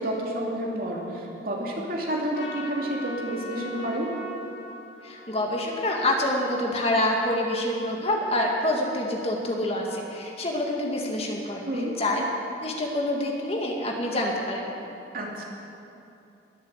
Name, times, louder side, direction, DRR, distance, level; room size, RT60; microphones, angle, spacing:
voice 1, 0.0-4.1 11.7-11.9 15.1-15.4, right 1 dB, 50° right, -2 dB, 2.8 m, -30 dB
Trumpet, 2.3-6.7, left 2 dB, 75° left, 2.0 m, -41 dB
voice 2, 5.0-11.6 12.0-12.2 12.6-14.7, left 1 dB, 35° left, -1 dB, 2.0 m, -26 dB
21.5 x 8.3 x 8.1 m, 2.7 s
head